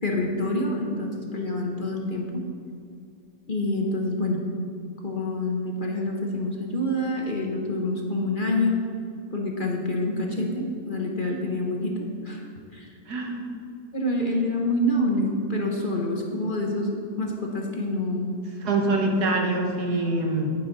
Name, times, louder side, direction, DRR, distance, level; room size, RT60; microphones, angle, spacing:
voice 1, 0.0-2.4 3.5-4.4 5.0-8.8 9.3-11.9 12.2-12.9 13.9-18.3, left 1 dB, 35° left, 0 dB, 1.1 m, -27 dB
voice 2, 13.1-13.5 18.6-20.6, right 2 dB, 75° right, 1 dB, 2.0 m, -24 dB
10.5 x 10.0 x 4.0 m, 2.4 s
omnidirectional pair, 1.7 m